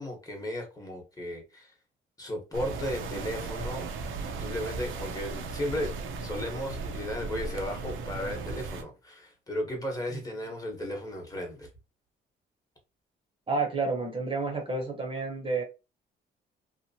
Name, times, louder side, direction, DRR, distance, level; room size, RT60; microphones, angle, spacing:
voice 1, 0.0-1.7 2.2-3.9 4.4-5.9 6.2-11.7, left 1 dB, 20° left, 1.1 m, -35 dB
sound 1, 2.5-8.8, right 4 dB, 80° right, 0.6 m, -36 dB
voice 2, 13.5-15.6, right 3 dB, 25° right, 0.7 m, -30 dB
2.9 x 2.1 x 2.7 m
cardioid pair, 90°, 20 cm